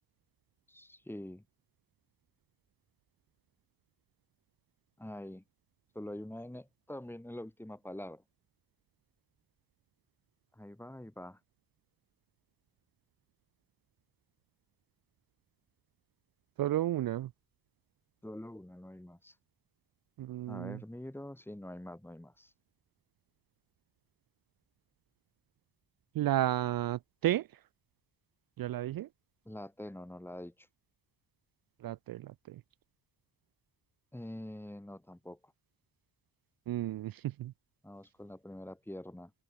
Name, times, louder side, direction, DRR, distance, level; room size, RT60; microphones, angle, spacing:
voice 1, 0.7-1.4 5.0-5.4 5.9-8.2 10.5-11.4 18.2-19.3 20.5-22.5 29.5-30.7 34.1-35.5 37.8-39.3, left 1 dB, 5° left, 2.7 m, -45 dB
voice 2, 16.6-17.3 20.2-20.8 26.1-27.6 28.6-29.1 31.8-32.6 36.7-37.5, right 13 dB, 60° right, 0.6 m, -33 dB
cardioid pair, 110°, 40 cm